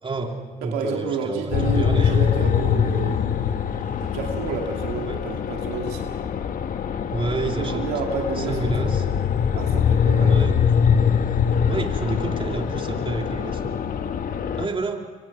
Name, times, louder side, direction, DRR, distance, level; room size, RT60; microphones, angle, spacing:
voice 1, 0.0-2.3 5.1-5.2 7.1-7.9 8.3-9.1 10.3-10.6 11.7-13.8 14.5-15.1, right 3 dB, 35° right, 3 dB, 3.3 m, -30 dB
voice 2, 0.6-3.2 4.0-6.1 7.4-8.9 9.5-10.4, right 5 dB, 85° right, 2 dB, 2.4 m, -30 dB
sound 1, 1.5-14.7, left 7 dB, 60° left, 1.5 m, -23 dB
25.0 x 24.5 x 6.0 m, 1.4 s
supercardioid pair, 60°, 16 cm